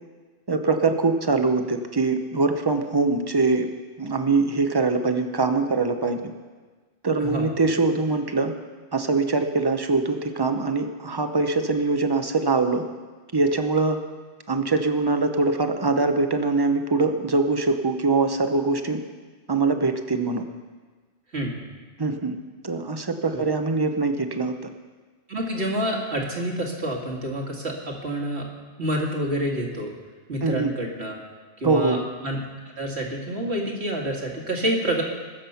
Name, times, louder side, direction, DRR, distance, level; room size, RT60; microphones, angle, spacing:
voice 1, 0.5-3.7 4.0-6.2 7.0-8.5 8.9-12.8 13.3-14.0 14.5-19.0 19.5-20.4 22.0-22.3 22.6-24.5 30.4-30.7 31.6-32.0, right 3 dB, 25° right, 7 dB, 0.8 m, -23 dB
voice 2, 7.2-7.5 21.3-21.6 23.3-23.4 25.3-28.4 28.8-29.9 30.3-31.2 31.6-32.4 32.8-35.0, right 1 dB, 60° right, -1 dB, 2.4 m, -28 dB
21.0 x 7.5 x 5.7 m, 1.4 s
omnidirectional pair, 1.2 m